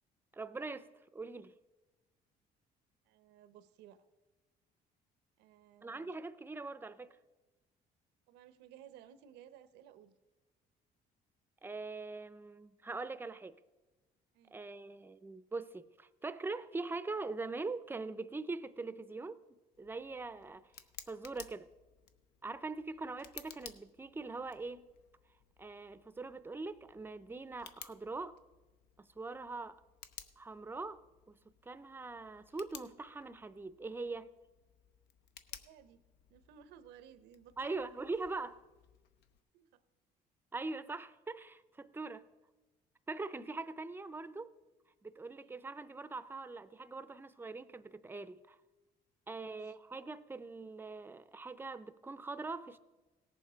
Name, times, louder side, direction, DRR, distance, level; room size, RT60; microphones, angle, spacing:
voice 1, 0.3-1.5 5.8-7.1 11.6-13.6 14.5-19.4 19.8-20.7 21.1-21.7 22.4-24.9 25.6-28.4 29.0-29.8 30.4-31.4 31.6-34.3 37.6-38.6 40.5-42.3 43.1-44.5 45.0-48.6 49.3-52.8, right 3 dB, 10° right, 0.5 m, -42 dB
voice 2, 3.1-4.0 5.4-6.2 8.3-10.1 14.3-14.6 35.5-36.0 36.3-37.7 39.5-39.8 45.4-45.6 49.3-49.7, right 9 dB, 90° right, 0.8 m, -58 dB
Tick, 19.7-39.4, left 9 dB, 80° left, 0.8 m, -57 dB
17.5 x 7.2 x 5.0 m
cardioid pair, 110°, 17 cm